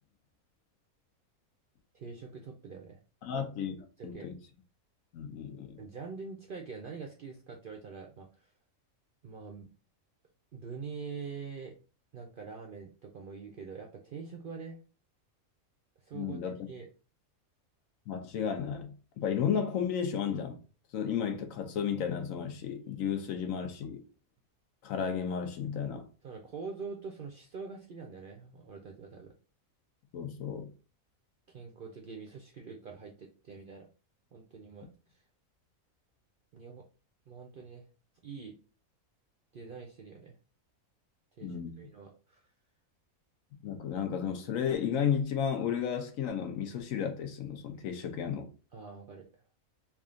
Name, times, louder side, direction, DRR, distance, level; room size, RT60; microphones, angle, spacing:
voice 1, 1.9-3.0 4.0-4.3 5.8-8.5 9.2-9.7 10.5-11.7 12.1-14.8 16.0-16.4 16.7-16.9 26.2-29.3 31.5-33.9 34.3-35.2 36.5-36.8 37.3-37.9 38.2-38.6 39.5-40.4 41.4-42.5 48.7-49.3, right 5 dB, 60° right, 0.5 m, -44 dB
voice 2, 3.2-3.7 4.0-4.3 5.1-5.8 16.1-16.5 18.1-20.6 20.9-24.0 24.8-26.0 30.1-30.7 41.4-41.7 43.6-48.5, left 8 dB, 70° left, 1.1 m, -33 dB
3.5 x 2.5 x 3.7 m
omnidirectional pair, 1.5 m